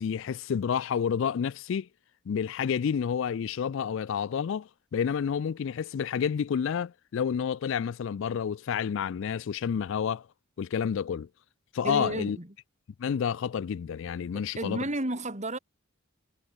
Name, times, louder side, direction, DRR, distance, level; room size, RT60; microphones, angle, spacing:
voice 1, 0.0-1.9 2.3-10.3 10.6-11.3 11.7-12.4 13.0-14.8, left 7 dB, 65° left, 0.3 m, -29 dB
voice 2, 11.8-12.5 14.3-15.6, right 1 dB, 35° right, 4.1 m, -32 dB
head